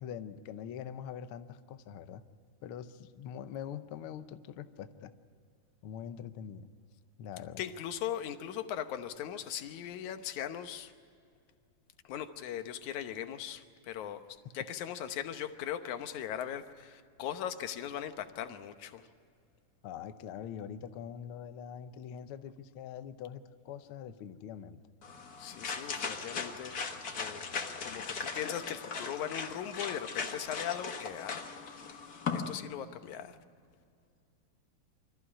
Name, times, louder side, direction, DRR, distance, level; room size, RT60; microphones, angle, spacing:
voice 1, 0.0-2.2 2.6-5.1 5.8-6.7 7.2-7.6 19.8-24.8, left 8 dB, 90° left, 10 dB, 1.2 m, -43 dB
voice 2, 7.6-10.9 12.0-14.2 14.5-19.1 25.4-27.5 27.8-32.0 32.3-33.4, left 10 dB, 75° left, 9 dB, 2.4 m, -39 dB
sound 1, 25.0-32.6, left 5 dB, 45° left, 1.2 m, -38 dB
25.0 x 14.5 x 9.8 m, 2.3 s
omnidirectional pair, 3.6 m